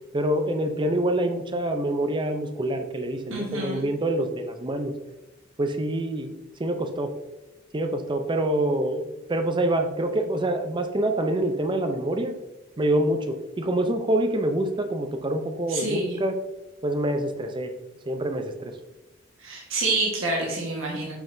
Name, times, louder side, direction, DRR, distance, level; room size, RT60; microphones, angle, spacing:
voice 1, 0.1-4.9 5.6-6.3 6.6-7.1 7.7-12.3 12.8-16.4 16.8-17.7 18.1-18.7, right 1 dB, 25° right, 6 dB, 0.5 m, -26 dB
voice 2, 3.3-3.8 15.7-16.2 19.4-21.1, right 2 dB, 80° right, -2 dB, 1.5 m, -27 dB
7.0 x 5.6 x 2.6 m, 1.1 s
head